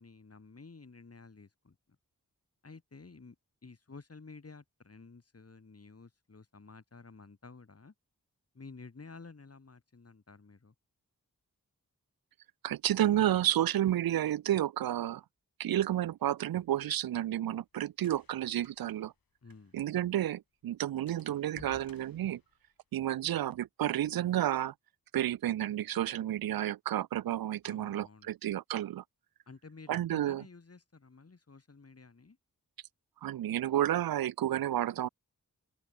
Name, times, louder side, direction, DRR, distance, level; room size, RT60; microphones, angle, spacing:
voice 1, 0.0-1.8 2.6-3.4 3.6-7.9 8.5-10.7 19.4-19.8 27.6-28.3 29.5-32.4, left 4 dB, 45° left, 2.5 m, -52 dB
voice 2, 12.6-15.2 15.6-19.1 19.7-22.4 22.9-24.7 25.1-29.0 29.9-30.4 33.2-35.1, right 12 dB, 85° right, 0.5 m, -31 dB
sound 1, 16.5-20.0 20.2-20.3 20.6-20.8 21.1-23.1, left 6 dB, 85° left, 4.3 m, -59 dB
open air
cardioid pair, 55°, 35 cm